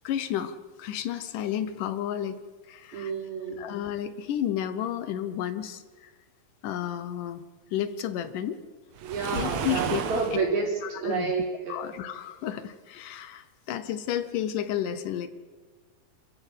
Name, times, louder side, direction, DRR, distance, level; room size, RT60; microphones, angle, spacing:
voice 1, 0.0-2.4 2.7-3.1 3.6-6.1 6.6-7.4 7.7-8.6 9.3-10.0 10.3-10.4 10.8-11.3 11.7-15.3, left 10 dB, 70° left, 12 dB, 2.4 m, -32 dB
voice 2, 2.9-3.6 9.0-11.8, right 4 dB, 90° right, -2 dB, 6.3 m, -29 dB
Waves surf, 9.0-10.5, right 7 dB, 60° right, 2.0 m, -32 dB
28.0 x 14.5 x 8.3 m, 1.4 s
omnidirectional pair, 4.2 m